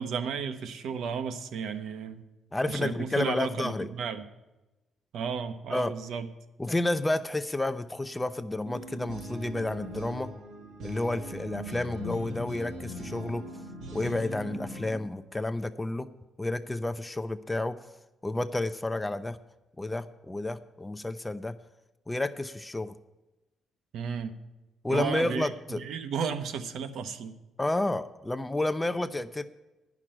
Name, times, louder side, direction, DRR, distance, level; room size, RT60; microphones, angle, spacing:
voice 1, 0.0-2.2 2.7-4.2 5.1-6.3 23.9-24.3 24.9-27.3, right 6 dB, 75° right, 9 dB, 0.8 m, -33 dB
voice 2, 2.5-3.9 5.7-5.9 6.6-10.3 10.8-13.5 13.9-16.1 16.4-17.8 18.2-19.4 19.8-21.5 22.1-23.0 24.8-25.8 27.6-29.4, left 2 dB, 10° left, 11 dB, 0.4 m, -30 dB
sound 1, 8.6-15.0, equal, 90° right, 1.7 m, -40 dB
10.0 x 6.0 x 8.7 m, 1.0 s
cardioid pair, 145°, 0 cm